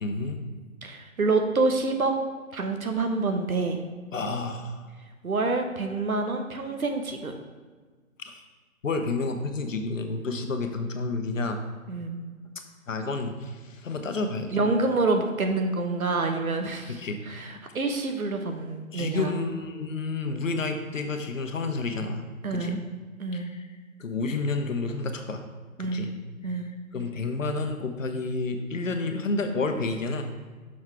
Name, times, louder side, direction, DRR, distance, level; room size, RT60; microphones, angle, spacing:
voice 1, 0.0-0.4 4.1-4.9 8.2-8.4 8.8-11.6 12.9-14.6 16.9-17.2 18.9-22.2 22.5-22.8 23.3-25.5 25.8-26.1 26.5-26.6 26.9-30.2, left 3 dB, 65° left, 6 dB, 0.9 m, -30 dB
voice 2, 0.8-2.1 2.5-3.8 5.2-7.3 11.9-12.2 14.5-17.0 17.3-19.3 22.4-22.8 23.2-23.5 25.8-26.1 26.4-26.7, right 3 dB, 85° right, 5 dB, 1.0 m, -27 dB
6.2 x 3.8 x 4.6 m, 1.4 s
figure-of-eight pair, 155°, 41 cm